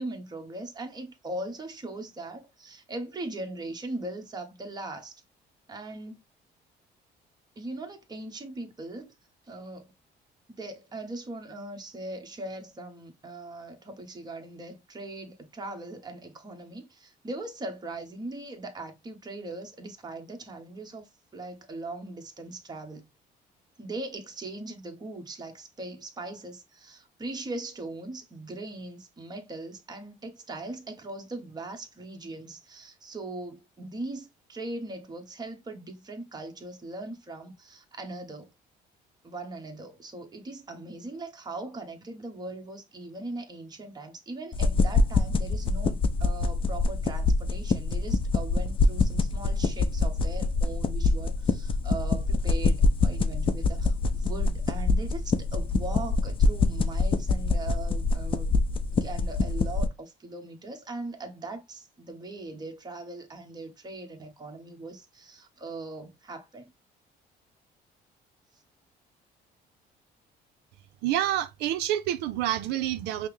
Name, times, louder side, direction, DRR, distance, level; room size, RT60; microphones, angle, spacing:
voice 1, 0.0-5.2 5.7-6.2 7.6-9.1 9.5-9.9 10.6-23.1 23.8-38.5 39.2-58.6 59.0-66.7, right 2 dB, 25° right, 1.0 m, -40 dB
sound 1, 44.5-59.9, left 3 dB, 30° left, 0.5 m, -25 dB
voice 2, 71.0-73.3, right 12 dB, 90° right, 0.4 m, -28 dB
5.4 x 2.0 x 3.1 m
cardioid pair, 110°, 17 cm